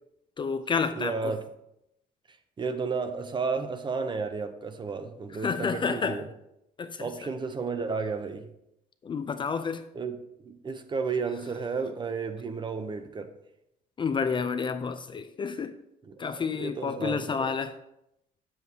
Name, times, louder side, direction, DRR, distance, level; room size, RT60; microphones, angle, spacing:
voice 1, 0.4-1.3 5.4-6.2 6.8-7.1 9.0-9.8 14.0-15.8 16.2-17.7, left 5 dB, 30° left, 0.4 m, -30 dB
voice 2, 0.9-1.4 2.3-6.2 7.0-8.5 9.9-10.2 10.4-13.3 16.1-17.6, right 4 dB, 25° right, 0.6 m, -33 dB
7.8 x 7.2 x 2.9 m
cardioid pair, 110°, 17 cm